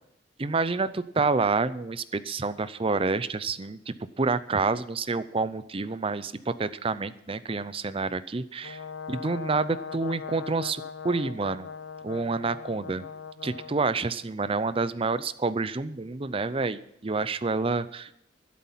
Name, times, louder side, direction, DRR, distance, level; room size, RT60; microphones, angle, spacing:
voice 1, 0.4-8.8 9.1-11.7 12.0-13.0 13.4-18.2, right 3 dB, 30° right, 15 dB, 0.5 m, -28 dB
Brass instrument, 8.6-13.8, left 6 dB, 80° left, 0.6 m, -40 dB
12.5 x 11.5 x 5.7 m, 0.75 s
head